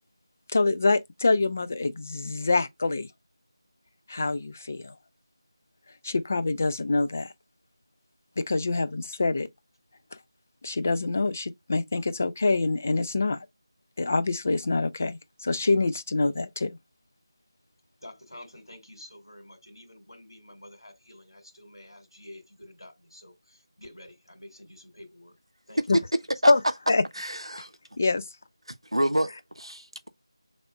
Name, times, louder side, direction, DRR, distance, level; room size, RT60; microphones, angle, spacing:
voice 1, 0.5-3.1 4.1-4.9 6.0-7.3 8.4-9.5 10.6-13.4 14.0-16.8 25.9-26.0 26.5-26.6 26.9-27.0 28.0-28.2, left 3 dB, 25° left, 0.3 m, -25 dB
voice 2, 18.0-25.4 25.7-26.0, left 1 dB, 65° left, 2.1 m, -49 dB
voice 3, 27.2-27.7 28.7-30.1, right 1 dB, 90° right, 0.6 m, -27 dB
5.8 x 3.4 x 2.4 m
figure-of-eight pair, 165°, 3 cm